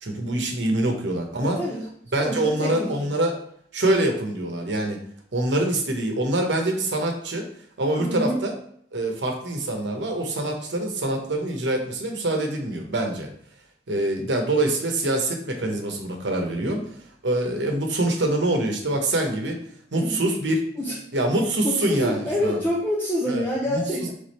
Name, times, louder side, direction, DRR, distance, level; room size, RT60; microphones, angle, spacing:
voice 1, 0.0-1.6 2.1-3.3 3.7-5.0 5.3-7.5 7.8-8.5 8.9-13.3 13.9-16.8 17.2-19.6 19.9-20.6 21.1-22.6 23.3-23.4 23.7-23.8, right 1 dB, 75° right, 2 dB, 0.9 m, -25 dB
voice 2, 1.4-1.9 2.2-3.0 8.0-8.4 19.9-20.2 20.8-20.9 21.6-24.1, left 1 dB, 10° left, -5 dB, 0.7 m, -27 dB
3.5 x 3.5 x 4.2 m, 0.64 s
head